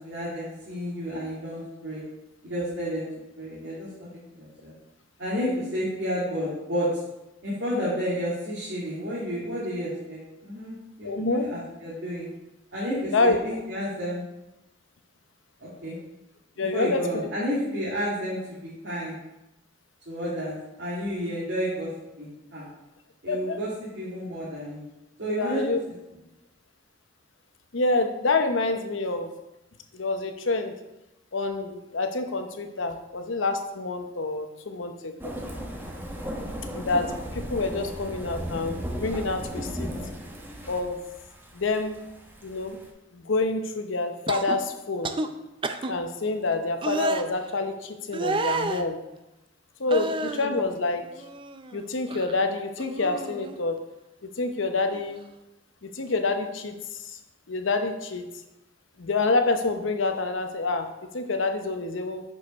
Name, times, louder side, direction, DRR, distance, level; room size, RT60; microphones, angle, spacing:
voice 1, 0.0-2.0 2.4-3.1 3.4-4.7 5.2-6.9 7.4-12.3 12.7-14.2 15.6-16.0 16.6-19.2 20.1-21.9 22.2-22.6 23.2-23.7 23.9-24.8 25.2-25.6 36.5-36.6, equal, 65° right, -8 dB, 2.3 m, -31 dB
voice 2, 11.0-11.5 13.1-13.4 16.6-17.3 23.3-23.6 25.4-25.8 27.7-29.3 29.9-30.7 31.3-35.3 36.7-39.9 40.7-41.0 41.5-42.0 42.4-42.8 43.1-45.1 45.9-49.0 49.8-51.0 51.7-53.8 54.2-55.2 55.8-57.2 57.5-58.3 59.0-62.2, left 3 dB, 90° left, 7 dB, 0.9 m, -27 dB
sound 1, 35.2-42.9, equal, 10° right, 1.0 m, -36 dB
sound 2, 44.3-44.6 45.0-45.3 45.6-45.9 46.8-47.2 48.1-48.8 49.9-50.5 51.0-51.8 52.1-52.4 52.8-53.6 54.8-55.0, right 3 dB, 25° right, 0.4 m, -30 dB
6.5 x 5.5 x 5.2 m, 0.95 s
head